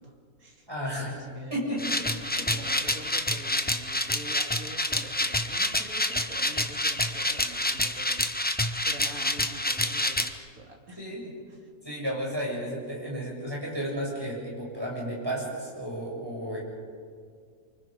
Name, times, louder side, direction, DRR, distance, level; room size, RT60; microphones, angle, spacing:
voice 1, 0.0-0.7 1.1-1.7 2.0-11.7, right 1 dB, 65° right, 1 dB, 3.2 m, -45 dB
voice 2, 0.7-1.2 1.5-1.8 11.0-11.2 11.8-16.6, equal, 15° right, -4 dB, 7.1 m, -33 dB
sound 1, 1.8-10.3, left 1 dB, 10° left, 0.7 m, -28 dB
28.0 x 25.0 x 5.2 m, 2.1 s
omnidirectional pair, 1.6 m